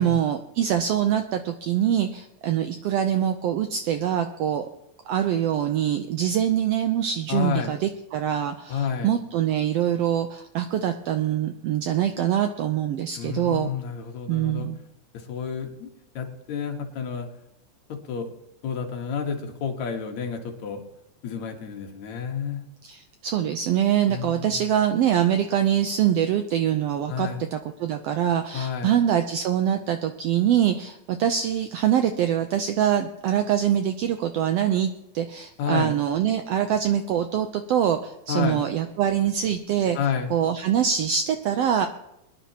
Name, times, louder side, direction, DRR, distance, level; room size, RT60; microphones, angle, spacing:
voice 1, 0.0-4.7 5.1-13.7 14.3-14.8 22.9-40.0 40.3-41.9, right 9 dB, 90° right, 7 dB, 1.4 m, -24 dB
voice 2, 7.3-7.7 8.7-9.1 13.2-14.7 15.1-15.9 16.1-17.3 17.9-18.3 18.6-20.8 21.2-22.6 24.1-24.6 27.1-27.4 28.5-28.9 35.6-35.9 38.3-38.6 39.9-40.3, left 7 dB, 70° left, 3 dB, 2.6 m, -30 dB
23.0 x 10.5 x 2.9 m, 0.84 s
omnidirectional pair, 3.4 m